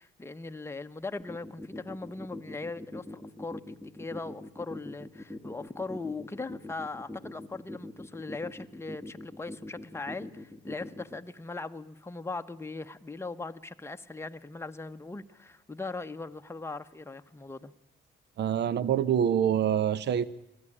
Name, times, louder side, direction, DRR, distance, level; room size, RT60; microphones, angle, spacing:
voice 1, 0.0-3.6 4.0-17.7, left 3 dB, 10° left, 1.0 m, -39 dB
sound 1, 1.2-11.2, left 1 dB, 5° right, 1.6 m, -42 dB
voice 2, 18.4-20.2, right 9 dB, 60° right, 0.8 m, -26 dB
21.0 x 14.5 x 9.9 m
cardioid pair, 90°, 20 cm